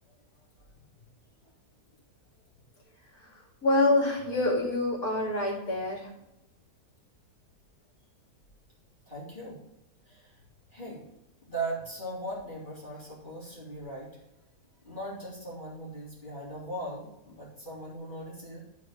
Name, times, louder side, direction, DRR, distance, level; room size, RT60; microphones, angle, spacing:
voice 1, 3.2-6.1, left 2 dB, 55° left, -3 dB, 3.1 m, -27 dB
voice 2, 9.1-9.6 10.0-10.4 10.7-11.0 11.5-14.2 14.8-18.6, right 2 dB, 30° left, -7 dB, 3.7 m, -39 dB
12.5 x 4.9 x 5.4 m, 0.86 s
omnidirectional pair, 1.8 m